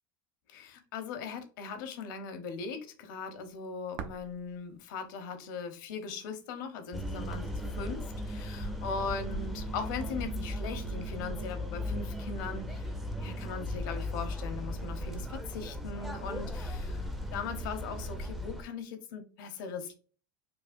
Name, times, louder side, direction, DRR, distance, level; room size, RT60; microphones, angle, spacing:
voice 1, 0.5-12.9 13.2-19.9, left 5 dB, 75° left, 8 dB, 0.9 m, -39 dB
sound 1, 3.3-10.1, right 7 dB, 55° right, 0.6 m, -52 dB
sound 2, 6.9-18.6, equal, ahead, 0.5 m, -37 dB
4.8 x 2.4 x 2.6 m, 0.38 s
supercardioid pair, 120°, 11 cm